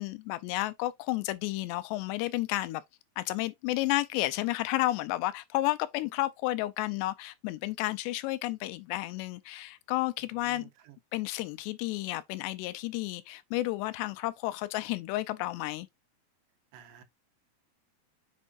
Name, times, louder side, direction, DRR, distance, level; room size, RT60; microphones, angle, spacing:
voice 1, 0.0-2.8 3.2-10.7 11.1-15.9, left 17 dB, 90° left, 2.8 m, -32 dB
voice 2, 10.2-11.0 16.7-17.0, right 11 dB, 90° right, 3.3 m, -53 dB
7.3 x 5.3 x 2.5 m
omnidirectional pair, 4.8 m